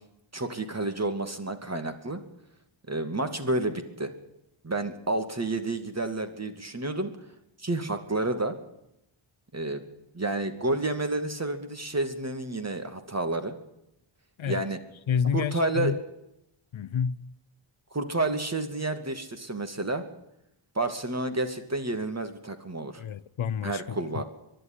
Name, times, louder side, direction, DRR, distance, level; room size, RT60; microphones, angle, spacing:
voice 1, 0.3-2.2 2.9-4.1 4.6-7.1 7.6-8.5 9.5-9.9 10.1-13.5 14.5-14.8 15.3-15.9 17.9-20.0 20.7-23.0 23.6-24.2, right 2 dB, 30° right, 2.5 m, -30 dB
voice 2, 15.1-16.0 16.7-17.3 23.0-23.8 24.1-24.2, left 7 dB, 70° left, 0.7 m, -29 dB
23.5 x 11.5 x 9.7 m
wide cardioid pair, 100°, 50 cm